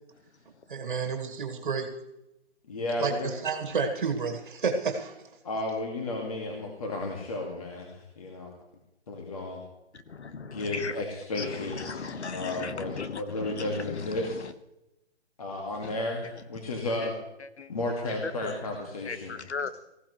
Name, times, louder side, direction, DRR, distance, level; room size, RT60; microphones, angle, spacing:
voice 1, 0.7-1.9 3.0-5.2, right 5 dB, 45° right, 3 dB, 2.1 m, -30 dB
voice 2, 2.7-3.3 5.4-8.5 9.1-9.6 10.4-12.0 12.3-14.4 15.4-17.1 17.7-19.4, left 2 dB, 30° left, 0 dB, 2.2 m, -33 dB
voice 3, 9.9-11.0 11.3-14.5 15.8-16.0 17.0-17.1 17.4-17.7 18.2-18.5 19.0-19.7, left 5 dB, 75° left, 11 dB, 1.5 m, -37 dB
19.5 x 15.5 x 3.2 m, 0.89 s
hypercardioid pair, 175°, 34 cm